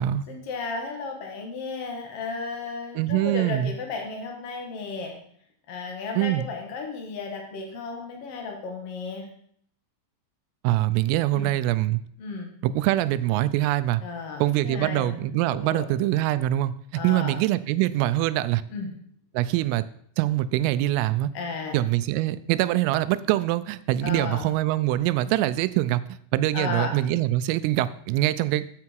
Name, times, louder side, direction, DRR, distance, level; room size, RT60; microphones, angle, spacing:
voice 1, 0.3-5.1 5.7-9.3 11.3-11.6 12.2-12.5 14.0-15.2 15.5-15.9 16.9-17.4 18.7-18.9 21.3-21.8 24.0-24.5 26.5-27.0, left 4 dB, 75° left, 2 dB, 1.4 m, -34 dB
voice 2, 3.0-3.7 6.2-6.5 10.6-12.0 12.6-14.0 14.4-18.6 19.3-19.8 20.2-21.3 21.7-26.0 26.3-28.7, right 15 dB, 90° right, 15 dB, 3.2 m, -24 dB
13.5 x 8.6 x 4.6 m, 0.63 s
omnidirectional pair, 5.7 m